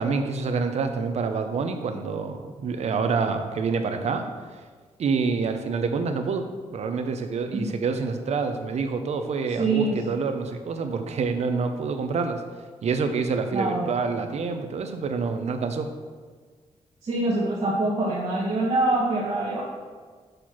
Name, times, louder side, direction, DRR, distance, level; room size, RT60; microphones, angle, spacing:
voice 1, 0.0-4.3 5.0-6.5 6.7-12.4 12.8-15.9, right 5 dB, 70° right, 7 dB, 0.7 m, -27 dB
voice 2, 9.5-10.0 13.5-13.9 17.0-19.6, right 2 dB, 50° right, -6 dB, 1.3 m, -24 dB
6.5 x 4.5 x 5.9 m, 1.5 s
wide cardioid pair, 135°, 12 cm